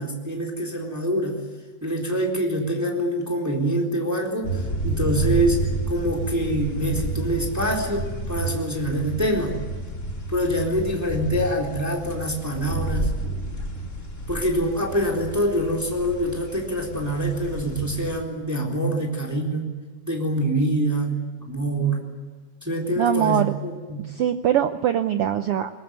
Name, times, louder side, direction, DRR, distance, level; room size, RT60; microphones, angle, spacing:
voice 1, 0.0-1.4 1.8-9.6 10.3-13.1 14.3-19.7 20.1-21.1 21.4-22.0 22.6-24.1, right 1 dB, 5° right, 1 dB, 3.5 m, -25 dB
sound 1, 4.4-18.2, right 2 dB, 25° left, 3.4 m, -30 dB
voice 2, 23.0-23.5 24.1-25.7, right 10 dB, 75° right, 9 dB, 1.3 m, -22 dB
22.5 x 21.0 x 9.5 m, 1.4 s
omnidirectional pair, 3.6 m